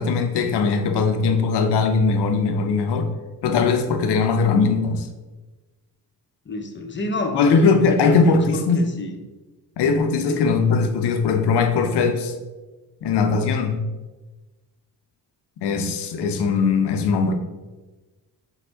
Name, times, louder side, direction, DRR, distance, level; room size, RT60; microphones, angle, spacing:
voice 1, 0.0-3.1 3.4-5.1 7.3-8.9 9.8-12.3 13.0-13.8 15.6-17.3, left 4 dB, 70° left, 6 dB, 0.6 m, -20 dB
voice 2, 6.5-8.2 8.5-9.2 10.2-10.4, left 2 dB, 25° left, 4 dB, 0.5 m, -28 dB
5.0 x 2.1 x 3.3 m, 1.2 s
cardioid pair, 70°, 42 cm